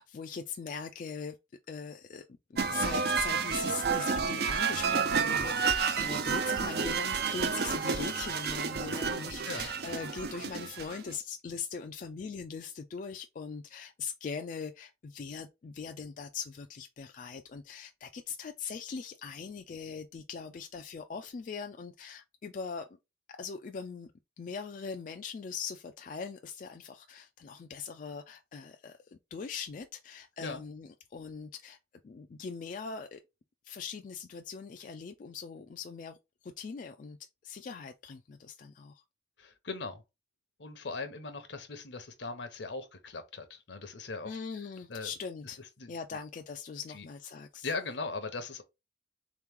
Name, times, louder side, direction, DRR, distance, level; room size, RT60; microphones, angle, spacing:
voice 1, 0.0-1.4 1.7-22.9 23.3-24.1 24.4-31.8 32.0-33.2 33.6-36.2 36.4-37.2 37.4-39.0 44.3-45.6 45.9-47.7, left 5 dB, 45° left, 0.3 m, -41 dB
sound 1, 2.6-11.1, right 5 dB, 60° right, 0.5 m, -30 dB
voice 2, 39.4-40.0 40.6-44.4 44.9-45.1 45.4-46.2 46.9-47.0 47.6-48.6, left 3 dB, 75° left, 0.8 m, -39 dB
3.7 x 3.0 x 3.6 m
head